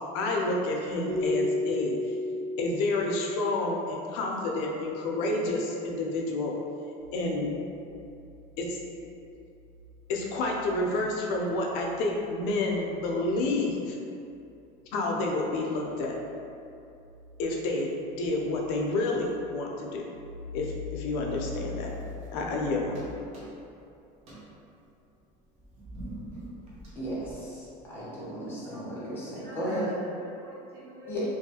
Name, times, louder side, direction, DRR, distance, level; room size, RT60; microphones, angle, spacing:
voice 1, 0.1-2.0 2.6-6.6 7.1-7.5 8.6-8.8 10.1-14.0 14.9-16.2 17.4-20.1 20.5-21.9 22.3-23.1, left 2 dB, 85° left, -1 dB, 0.5 m, -29 dB
Keyboard (musical), 1.1-3.9, left 1 dB, 70° right, 0.9 m, -32 dB
sound 1, 7.0-23.0, left 3 dB, 15° right, 1.0 m, -46 dB
sound 2, 21.5-22.6 22.9-23.8 24.2-27.9, right 1 dB, 35° right, 0.6 m, -46 dB
voice 2, 26.9-29.8 31.1-31.2, equal, 10° left, -10 dB, 0.7 m, -35 dB
voice 3, 28.4-28.9 29.3-31.2, equal, 90° right, -8 dB, 1.1 m, -47 dB
2.7 x 2.3 x 2.7 m, 2.6 s
cardioid pair, 170°, 18 cm